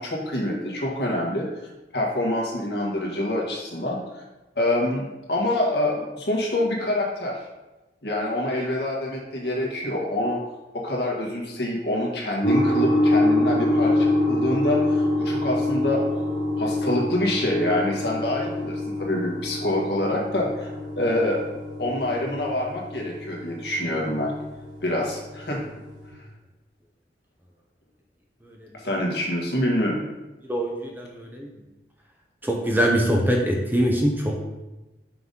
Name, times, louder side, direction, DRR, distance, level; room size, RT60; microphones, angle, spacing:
voice 1, 0.0-1.5 1.9-4.2 4.6-7.4 8.0-10.4 10.7-16.0 16.6-20.7 20.9-21.4 21.8-24.3 24.8-25.7 28.8-30.0, left 1 dB, 65° left, -2 dB, 1.7 m, -26 dB
sound 1, 12.4-26.1, left 1 dB, 25° left, 1.9 m, -26 dB
voice 2, 30.5-31.5 32.4-34.4, equal, 10° right, 0 dB, 0.7 m, -23 dB
5.8 x 4.0 x 5.4 m, 1.1 s
head